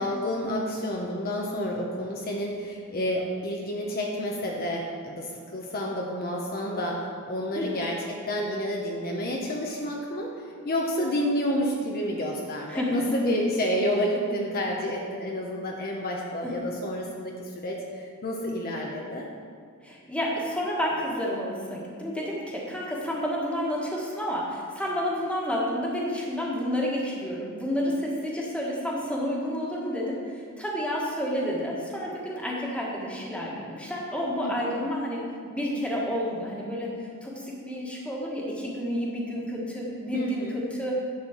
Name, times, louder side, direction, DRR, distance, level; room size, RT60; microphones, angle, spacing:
voice 1, 0.0-10.3 10.6-19.3 34.4-34.5 40.1-40.6, equal, 45° left, -1 dB, 0.9 m, -29 dB
voice 2, 12.7-13.0 16.4-16.5 19.8-35.2 35.5-36.9 37.2-41.0, equal, 5° left, -4 dB, 1.6 m, -30 dB
10.5 x 4.4 x 7.3 m, 2.2 s
head